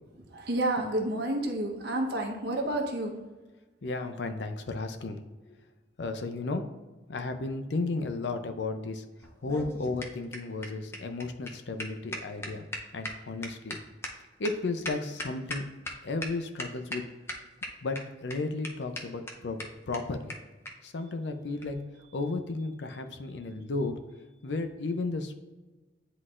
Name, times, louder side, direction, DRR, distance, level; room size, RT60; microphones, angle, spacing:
voice 1, 0.2-3.1, right 1 dB, 65° right, 2 dB, 1.0 m, -30 dB
voice 2, 3.8-5.6 6.0-6.7 7.1-9.0 9.4-12.6 12.9-13.8 14.4-15.6 16.0-17.0 17.8-20.3 20.8-21.8 22.1-23.9 24.4-25.4, left 3 dB, 75° left, 7 dB, 0.6 m, -33 dB
sound 1, 9.2-15.9 16.2-16.3 16.6-17.0 17.3-18.0 18.3-18.4 18.6-18.7 19.0-19.1 19.3-19.4 19.6-19.7 19.9-20.0 20.3-20.4 20.7-20.8 21.6-21.7, left 1 dB, 15° left, 0.6 m, -37 dB
9.8 x 3.9 x 2.5 m, 1.2 s
head